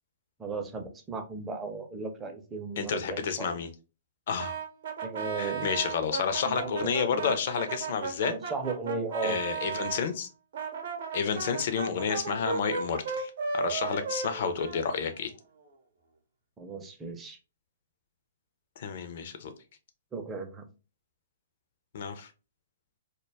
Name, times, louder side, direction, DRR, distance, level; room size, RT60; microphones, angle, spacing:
voice 1, 0.4-3.5 5.0-5.7 6.4-7.4 8.3-9.4 11.9-12.1 16.6-17.4 20.1-20.6, right 4 dB, 15° right, 0.5 m, -36 dB
voice 2, 2.8-3.7 4.3-4.6 5.4-8.3 9.2-10.3 11.1-15.3 18.8-19.5 21.9-22.3, left 6 dB, 50° left, 0.4 m, -30 dB
Brass instrument, 4.4-10.0 10.5-15.3, right 5 dB, 55° right, 0.7 m, -35 dB
2.2 x 2.1 x 3.2 m
figure-of-eight pair, 120°, 0 cm